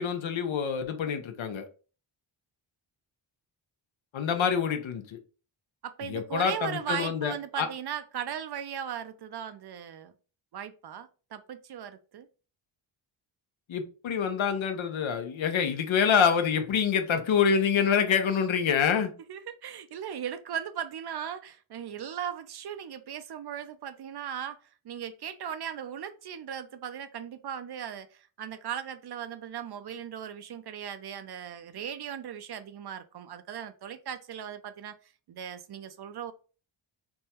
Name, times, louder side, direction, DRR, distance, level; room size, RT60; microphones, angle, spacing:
voice 1, 0.0-1.7 4.1-5.2 6.1-7.7 13.7-19.1, left 7 dB, 70° left, 0.8 m, -26 dB
voice 2, 5.8-10.1 10.5-12.3 19.3-24.6 24.8-34.9 35.3-36.3, right 9 dB, 55° right, 0.5 m, -38 dB
3.5 x 2.2 x 4.3 m
cardioid pair, 90°, 49 cm